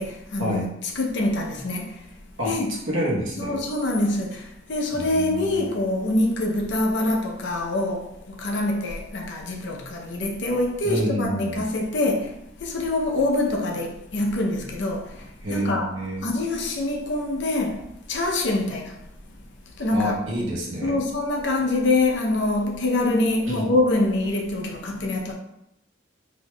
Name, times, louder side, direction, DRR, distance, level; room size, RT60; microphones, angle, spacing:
voice 1, 0.0-2.1 2.4-2.8 3.4-19.1 19.4-20.2 20.8-25.3, left 2 dB, 65° left, 0.6 m, -25 dB
voice 2, 2.9-3.6 4.9-5.7 10.8-11.6 15.4-16.3 19.9-20.9 23.5-23.7, equal, 90° right, 1.0 m, -28 dB
4.5 x 2.7 x 2.2 m
head